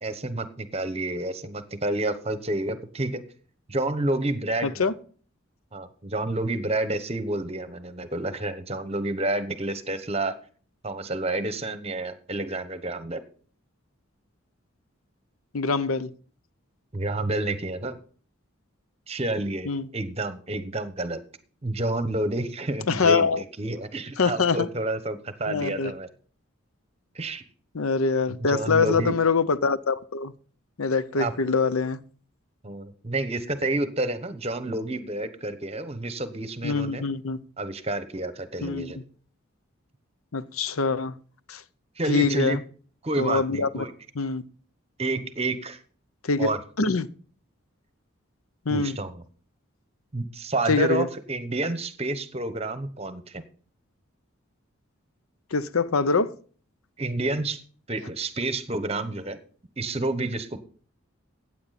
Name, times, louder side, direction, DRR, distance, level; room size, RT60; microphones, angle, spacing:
voice 1, 0.0-3.2 3.7-4.9 5.7-10.4 10.8-13.2 16.9-18.0 19.1-21.2 21.6-26.1 27.1-27.4 28.4-29.1 31.1-31.3 32.6-37.1 37.6-39.0 42.0-42.6 43.0-43.9 45.0-45.8 46.4-46.6 48.7-49.2 50.1-53.4 57.0-57.6 57.9-59.4 59.8-60.6, right 2 dB, 30° right, 1.0 m, -29 dB
voice 2, 4.6-4.9 15.5-16.1 19.7-19.9 22.9-23.4 24.2-24.7 25.5-25.9 27.7-30.3 30.8-32.0 36.6-37.4 38.6-38.9 40.3-41.2 41.5-41.6 42.1-42.6 43.2-43.8 44.2-44.4 46.2-46.5 46.8-47.1 48.7-49.0 50.7-51.1 55.5-56.3, left 4 dB, 85° left, 0.7 m, -24 dB
15.5 x 8.7 x 4.2 m
head